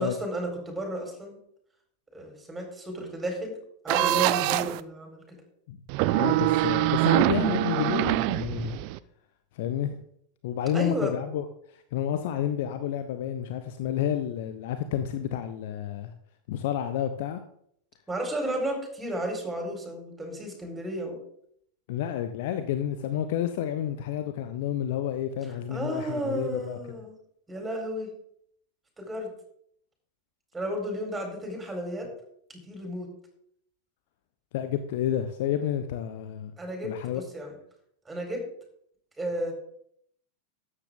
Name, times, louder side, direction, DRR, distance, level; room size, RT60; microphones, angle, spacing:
voice 1, 0.0-1.4 2.1-3.6 3.8-5.4 10.7-11.1 18.1-21.2 25.7-27.1 27.5-28.1 29.0-29.3 30.5-32.1 32.7-33.1 36.6-37.5 38.1-38.5 39.2-39.5, right 1 dB, 10° right, 2 dB, 4.4 m, -33 dB
sound 1, 3.9-4.8 5.9-9.0, right 17 dB, 45° right, 0.5 m, -24 dB
voice 2, 6.1-8.8 9.5-10.0 10.4-16.1 16.5-17.4 21.9-26.8 34.5-36.5 36.8-37.2, left 10 dB, 50° left, 9 dB, 0.8 m, -30 dB
13.0 x 9.8 x 3.7 m, 0.68 s
figure-of-eight pair, 90°, 0 cm